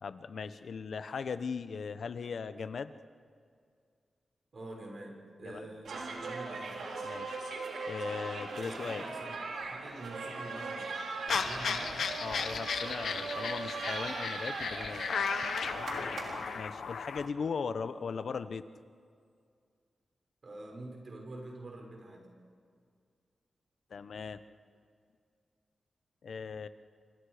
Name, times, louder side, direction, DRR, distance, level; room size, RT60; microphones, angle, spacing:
voice 1, 0.0-3.0 5.4-5.7 7.0-7.5 7.9-9.1 12.2-15.0 16.5-18.7 23.9-24.4 26.2-26.7, left 5 dB, 70° left, 11 dB, 1.0 m, -38 dB
voice 2, 4.5-6.7 8.6-10.9 11.3-12.0 15.9-16.2 20.4-22.3, right 2 dB, 50° right, 1 dB, 6.5 m, -46 dB
sound 1, 5.8-16.6, right 3 dB, 90° right, 3.9 m, -39 dB
sound 2, 11.3-17.3, left 6 dB, 90° left, 1.3 m, -35 dB
28.0 x 26.0 x 5.1 m, 2.2 s
wide cardioid pair, 85°, 0 cm